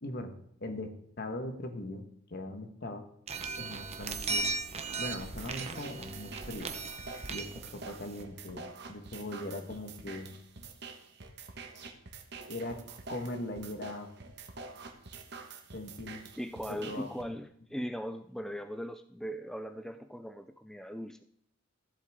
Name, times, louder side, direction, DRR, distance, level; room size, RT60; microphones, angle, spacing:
voice 1, 0.0-3.0 3.6-4.5 5.0-6.7 7.3-10.4 12.5-12.8 13.1-14.1 15.7-16.2 16.7-17.1, left 1 dB, 55° left, 6 dB, 1.3 m, -40 dB
sound 1, 3.3-8.2, right 3 dB, 35° right, 0.8 m, -37 dB
sound 2, 5.2-17.2, right 4 dB, 60° right, 1.2 m, -47 dB
voice 2, 16.4-21.2, equal, ahead, 9 dB, 0.3 m, -39 dB
14.0 x 7.7 x 3.6 m, 0.70 s
head